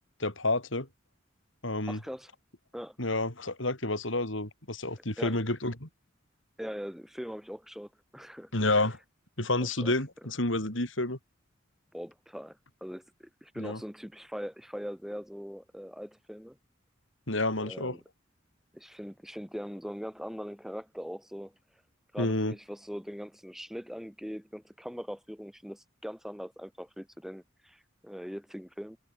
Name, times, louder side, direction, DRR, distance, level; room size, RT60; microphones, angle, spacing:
voice 1, 0.2-0.9 1.6-2.0 3.0-5.9 8.5-9.0 9.4-11.2 13.6-13.8 17.3-18.0 22.2-22.5, left 2 dB, 85° left, 6.0 m, -29 dB
voice 2, 1.9-2.3 2.7-3.1 5.2-5.3 6.6-8.5 9.7-9.9 11.9-16.6 17.6-18.0 18.7-21.5 22.1-29.0, equal, ahead, 7.8 m, -41 dB
head